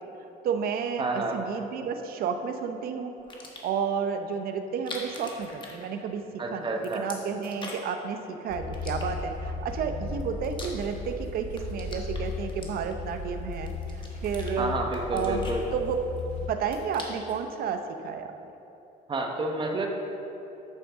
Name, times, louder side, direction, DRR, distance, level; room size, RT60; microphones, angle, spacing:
voice 1, 0.4-6.2 6.5-14.8 15.1-16.0 16.5-18.3, right 6 dB, 60° right, 6 dB, 0.7 m, -31 dB
voice 2, 1.0-1.4 6.4-7.0 14.6-15.6 19.1-19.9, right 2 dB, 30° right, 2 dB, 1.0 m, -29 dB
sound 1, 3.2-3.8 4.7-6.3 6.6-8.0 8.7-9.5 10.1-11.2 11.5-13.2 13.7-14.5 14.9-16.2 16.5-17.4, left 2 dB, 30° left, 1.3 m, -43 dB
Earth inside catacombs, 8.5-16.5, left 3 dB, 45° left, 1.6 m, -36 dB
9.0 x 6.5 x 3.6 m, 3.0 s
cardioid pair, 110°, 17 cm